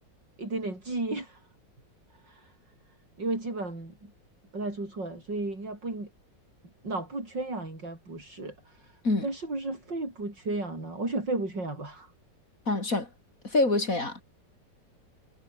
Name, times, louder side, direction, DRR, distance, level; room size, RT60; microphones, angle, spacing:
voice 1, 0.4-1.4 2.2-2.5 3.2-4.1 4.5-6.1 6.8-12.1, right 2 dB, 70° right, 7.8 m, -34 dB
voice 2, 12.7-13.1 13.4-14.2, left 2 dB, 45° left, 4.7 m, -26 dB
omnidirectional pair, 2.0 m